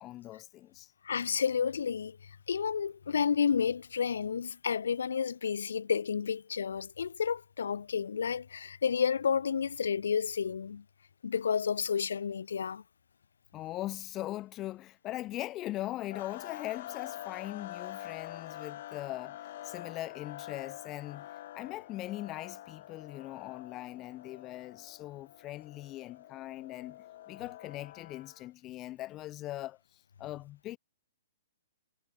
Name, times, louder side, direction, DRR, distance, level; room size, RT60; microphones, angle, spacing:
voice 1, 0.0-0.9 13.5-21.3 21.5-30.8, left 15 dB, 20° left, 2.5 m, -41 dB
voice 2, 1.0-2.2 2.5-10.8 11.2-12.8, left 6 dB, 85° left, 0.5 m, -31 dB
sound 1, 16.1-28.5, left 13 dB, 45° left, 3.7 m, -46 dB
hypercardioid pair, 160°, 0 cm